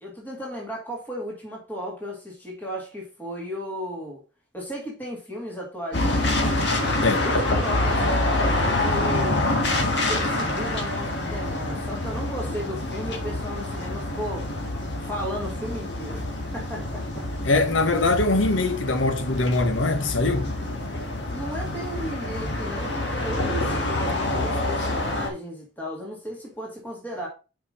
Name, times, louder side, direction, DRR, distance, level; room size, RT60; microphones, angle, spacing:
voice 1, 0.0-4.2 4.5-6.7 7.2-9.4 9.9-14.5 15.0-17.3 21.3-27.3, equal, 10° left, 2.2 m, -35 dB
Upper East Side Intersection, 5.9-25.3, left 2 dB, 60° left, 1.8 m, -26 dB
voice 2, 17.4-20.5, left 2 dB, 80° left, 1.1 m, -22 dB
5.8 x 5.2 x 5.2 m
head